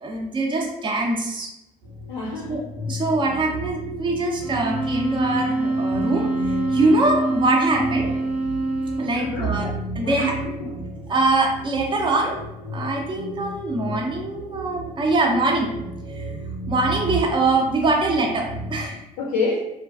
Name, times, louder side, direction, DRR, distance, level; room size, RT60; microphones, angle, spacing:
voice 1, 0.0-1.5 2.5-8.1 9.0-10.3 11.1-12.4 12.7-15.7 16.1-16.3 16.7-19.0, right 2 dB, 25° right, 0 dB, 0.5 m, -23 dB
sound 1, 1.8-18.9, equal, 85° right, 1.2 m, -34 dB
voice 2, 2.1-2.6 9.1-9.5 10.0-10.7 19.2-19.6, left 3 dB, 70° left, -3 dB, 0.4 m, -27 dB
sound 2, 4.4-9.3, right 2 dB, 70° right, 0.5 m, -25 dB
2.4 x 2.2 x 2.3 m, 0.87 s
figure-of-eight pair, 50°, 20 cm